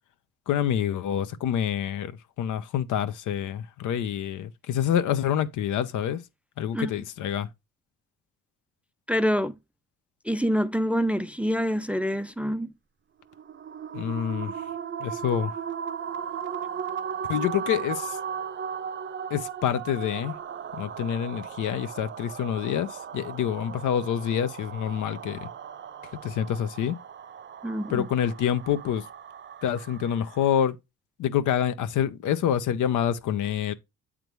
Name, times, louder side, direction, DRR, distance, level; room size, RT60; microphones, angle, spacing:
voice 1, 0.5-2.1 2.4-6.2 6.6-7.5 13.9-14.5 15.0-15.5 17.3-18.2 19.3-20.3 20.7-25.5 26.2-26.9 27.9-29.0 29.6-30.8 31.2-33.7, left 9 dB, 80° left, 0.9 m, -27 dB
voice 2, 9.1-9.5 10.2-12.7 27.6-28.1, equal, 5° right, 0.4 m, -26 dB
sound 1, 13.3-30.7, right 7 dB, 40° right, 0.7 m, -37 dB
8.1 x 3.7 x 4.7 m
cardioid pair, 90°, 30 cm